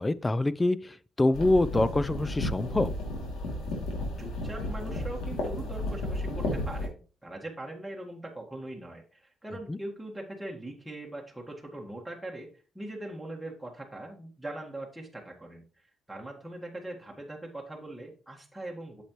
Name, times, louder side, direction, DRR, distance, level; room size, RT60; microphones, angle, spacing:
voice 1, 0.0-2.9 9.7-9.8, left 2 dB, 20° left, 0.5 m, -25 dB
sound 1, 1.3-6.9, left 1 dB, 85° left, 2.7 m, -33 dB
voice 2, 4.2-12.5 12.7-19.0, right 1 dB, 5° right, 1.7 m, -41 dB
8.4 x 6.9 x 3.1 m
cardioid pair, 90°, 0 cm